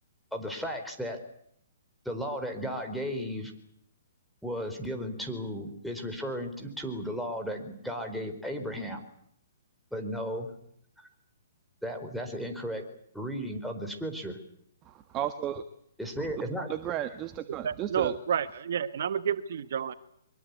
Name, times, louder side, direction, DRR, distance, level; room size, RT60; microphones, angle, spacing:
voice 1, 0.3-1.2 2.0-3.5 4.4-9.0 9.9-10.5 11.8-12.8 13.1-14.4 16.0-16.7, equal, ahead, 4 dB, 4.4 m, -35 dB
voice 2, 14.8-15.6 16.4-18.1, right 11 dB, 25° right, 9 dB, 1.5 m, -34 dB
voice 3, 17.6-19.9, right 8 dB, 65° right, 12 dB, 1.3 m, -30 dB
24.0 x 23.0 x 8.5 m, 0.70 s
hypercardioid pair, 135°, 0 cm